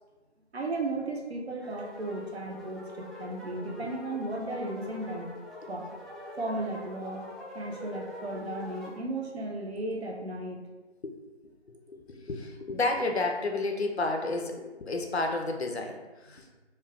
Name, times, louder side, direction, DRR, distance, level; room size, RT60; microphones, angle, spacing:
voice 1, 0.5-5.3 5.7-5.9 6.4-7.2 7.5-10.6, right 2 dB, 60° right, 0 dB, 0.6 m, -35 dB
sound 1, 1.6-9.0, left 1 dB, ahead, 0.3 m, -44 dB
voice 2, 11.7-16.6, left 2 dB, 65° left, 3 dB, 0.5 m, -31 dB
2.3 x 2.2 x 3.6 m, 1.2 s
figure-of-eight pair, 170°, 36 cm